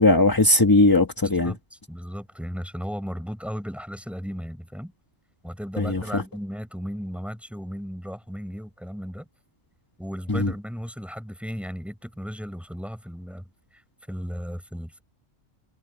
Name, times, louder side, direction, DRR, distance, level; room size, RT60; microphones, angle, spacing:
voice 1, 0.0-1.5 5.8-6.2 10.3-10.5, left 2 dB, 20° left, 1.2 m, -19 dB
voice 2, 1.2-4.9 5.4-9.3 10.0-13.8 14.1-15.0, equal, ahead, 6.7 m, -35 dB
omnidirectional pair, 1.2 m